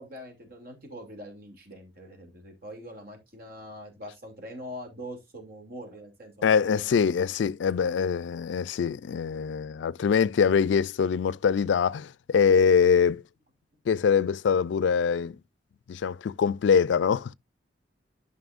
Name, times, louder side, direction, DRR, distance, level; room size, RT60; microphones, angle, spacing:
voice 1, 0.0-7.1, equal, 55° right, 2.6 m, -43 dB
voice 2, 6.4-13.2 13.9-15.4 15.9-17.3, left 6 dB, 85° left, 0.3 m, -23 dB
11.5 x 5.4 x 2.5 m
head